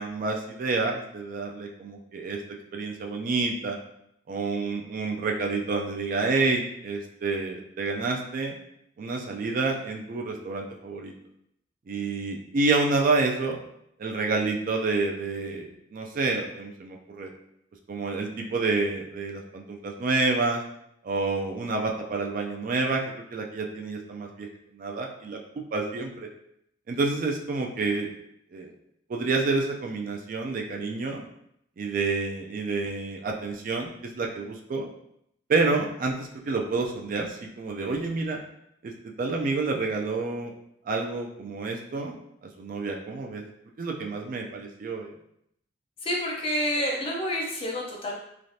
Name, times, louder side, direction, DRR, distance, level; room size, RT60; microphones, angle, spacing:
voice 1, 0.0-2.4 2.7-3.8 4.3-8.5 9.0-11.1 11.9-13.6 14.0-17.3 17.9-20.6 21.0-23.0 23.3-24.5 24.7-25.4 25.7-26.3 26.9-28.1 28.5-28.7 29.1-31.2 31.8-34.9 35.5-38.4 38.8-40.5 40.9-42.1 42.6-43.4 43.8-45.1, right 3 dB, 45° right, 1 dB, 0.3 m, -28 dB
voice 2, 46.0-48.2, equal, 30° left, -2 dB, 0.6 m, -28 dB
3.2 x 2.4 x 2.6 m, 0.75 s
head